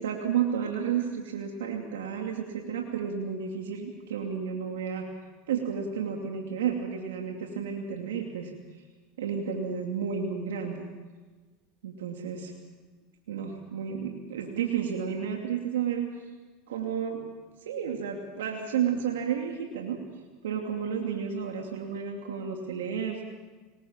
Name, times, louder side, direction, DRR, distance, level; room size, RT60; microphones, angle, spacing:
voice 1, 0.0-5.0 5.5-8.5 9.2-10.8 11.8-12.5 13.3-16.1 16.7-17.2 17.6-20.0 20.4-23.2, right 7 dB, 90° right, 2 dB, 2.7 m, -31 dB
25.0 x 20.5 x 7.4 m, 1.3 s
supercardioid pair, 110°, 0 cm